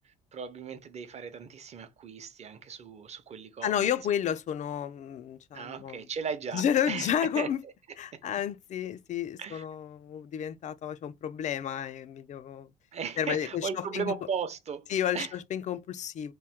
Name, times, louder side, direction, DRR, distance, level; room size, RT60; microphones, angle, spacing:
voice 1, 0.3-3.9 5.5-7.5 8.1-8.2 9.4-9.6 12.9-15.3, right 6 dB, 40° right, 0.7 m, -37 dB
voice 2, 3.6-6.0 6.5-7.6 8.0-12.7 13.2-14.1 14.9-16.3, left 9 dB, 45° left, 0.4 m, -31 dB
3.1 x 2.6 x 3.5 m
cardioid pair, 110°, 17 cm